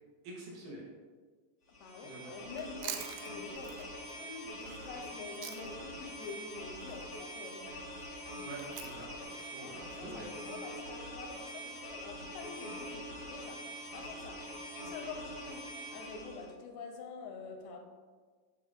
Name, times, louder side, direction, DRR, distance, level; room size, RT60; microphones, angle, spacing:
voice 1, 0.2-0.8 2.0-2.3 8.4-9.1 9.4-10.3, right 2 dB, 65° right, 2.8 m, -46 dB
voice 2, 1.7-7.8 8.2-8.4 9.6-17.8, left 4 dB, 90° left, 2.7 m, -47 dB
sound 1, 1.7-16.5, equal, 65° left, 0.7 m, -44 dB
Chewing mastication, 2.5-5.9 6.2-10.6, right 10 dB, 90° right, 2.5 m, -47 dB
10.5 x 3.7 x 2.6 m
omnidirectional pair, 4.4 m